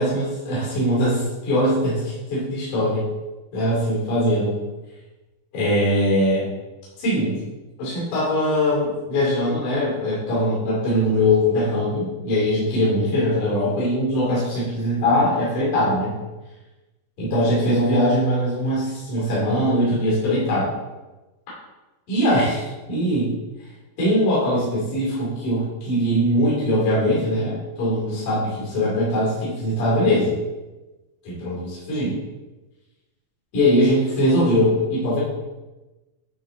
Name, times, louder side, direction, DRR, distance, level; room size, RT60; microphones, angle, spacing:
voice 1, 0.0-3.1 3.5-4.6 5.5-6.5 7.0-7.4 7.8-16.2 17.2-20.7 22.1-23.3 24.0-30.3 31.2-32.2 33.5-35.2, equal, 50° left, -8 dB, 4.0 m, -21 dB
9.9 x 4.4 x 3.8 m, 1.1 s
omnidirectional pair, 4.8 m